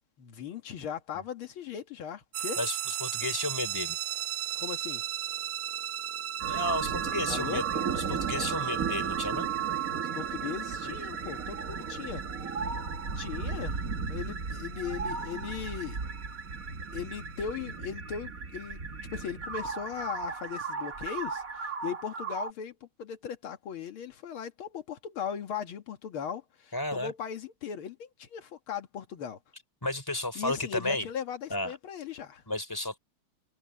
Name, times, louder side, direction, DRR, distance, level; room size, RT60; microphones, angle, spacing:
voice 1, 0.2-2.6 4.6-5.0 7.3-7.6 10.1-12.2 13.2-13.8 14.1-16.0 16.9-18.8 19.1-29.4 30.4-32.4, left 8 dB, 90° left, 2.3 m, -38 dB
sound 1, 2.3-17.8, right 10 dB, 70° right, 2.0 m, -37 dB
voice 2, 2.6-4.0 6.5-9.5 26.7-27.1 29.8-31.1 31.5-31.7 32.5-33.0, left 2 dB, 10° left, 3.9 m, -33 dB
sound 2, 6.4-22.5, right 6 dB, 45° right, 2.0 m, -35 dB
omnidirectional pair, 2.2 m